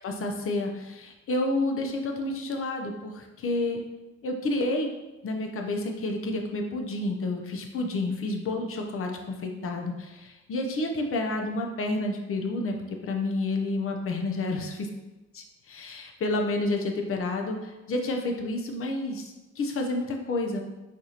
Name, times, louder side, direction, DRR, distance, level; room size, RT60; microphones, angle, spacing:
voice 1, 0.0-3.8 4.2-4.9 5.2-12.8 13.0-14.9 15.3-20.6, left 2 dB, 45° left, 3 dB, 0.6 m, -30 dB
4.7 x 2.5 x 2.8 m, 1.1 s
cardioid pair, 90°, 30 cm